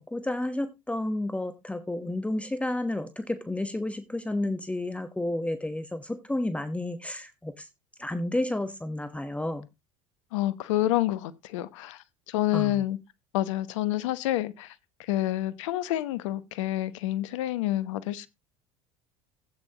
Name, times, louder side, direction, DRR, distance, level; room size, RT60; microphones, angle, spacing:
voice 1, 0.0-7.7 8.0-9.7 12.5-12.8, left 1 dB, 10° left, 1.1 m, -31 dB
voice 2, 10.3-13.0 13.3-14.7 15.0-18.3, left 14 dB, 70° left, 1.0 m, -28 dB
15.5 x 8.9 x 2.9 m
hypercardioid pair, 70°, 16 cm